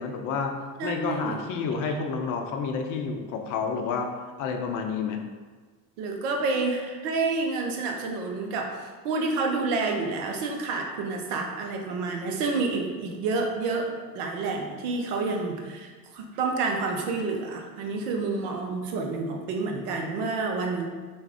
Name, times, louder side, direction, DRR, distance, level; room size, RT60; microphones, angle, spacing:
voice 1, 0.0-4.1 4.4-5.2, left 5 dB, 40° left, 4 dB, 0.5 m, -30 dB
voice 2, 0.8-1.4 6.0-20.9, right 3 dB, 70° right, 2 dB, 0.7 m, -29 dB
3.4 x 2.5 x 3.3 m, 1.4 s
hypercardioid pair, 70°, 48 cm